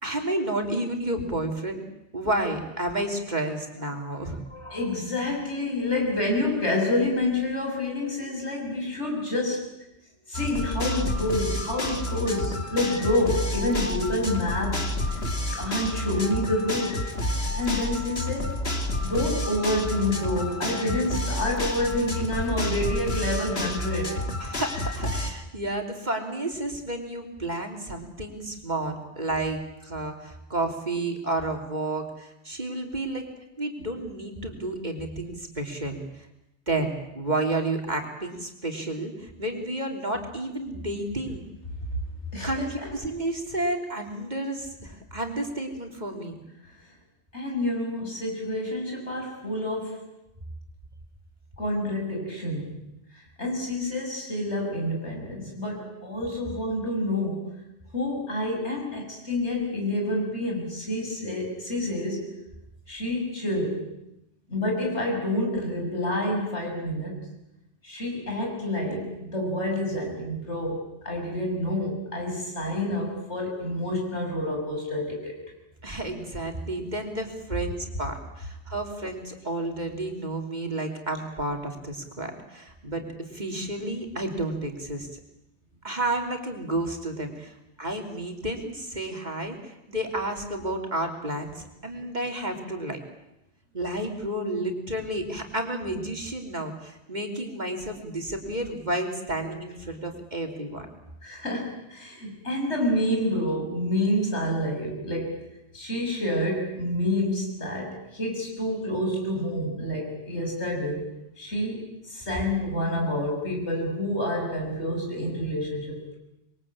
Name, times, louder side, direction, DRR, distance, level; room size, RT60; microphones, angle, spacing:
voice 1, 0.0-1.8 2.1-4.4 24.4-33.2 33.6-36.3 36.7-41.4 42.4-46.4 75.8-85.1 85.8-93.0 93.7-100.9, right 1 dB, 40° right, 3 dB, 3.4 m, -31 dB
voice 2, 4.5-9.7 10.3-14.9 15.5-17.0 17.5-18.5 19.0-24.2 42.3-42.7 47.3-50.1 51.6-52.8 53.4-57.5 57.9-62.4 62.9-63.9 64.5-67.3 67.8-75.4 101.2-105.5 105.7-111.1 111.4-116.2, left 1 dB, 80° left, 1 dB, 7.0 m, -28 dB
sound 1, 10.3-25.3, left 1 dB, 65° left, 2.7 m, -30 dB
26.0 x 22.0 x 8.7 m, 0.88 s
omnidirectional pair, 1.1 m